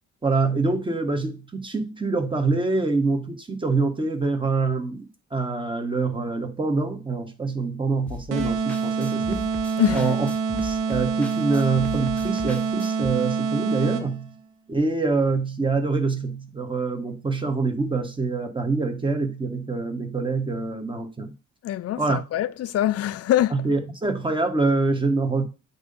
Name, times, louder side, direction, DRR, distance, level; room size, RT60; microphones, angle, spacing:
voice 1, 0.2-9.5 9.9-10.3 10.6-14.3 14.7-21.3 22.0-22.2 23.5-25.4, right 3 dB, 15° right, 1.3 m, -25 dB
sound 1, 8.1-13.1, left 4 dB, 5° left, 1.0 m, -38 dB
sound 2, 8.3-14.3, right 5 dB, 90° right, 0.8 m, -26 dB
voice 2, 21.6-23.6, left 12 dB, 55° left, 0.5 m, -23 dB
7.9 x 2.9 x 5.2 m
cardioid pair, 90°, 30 cm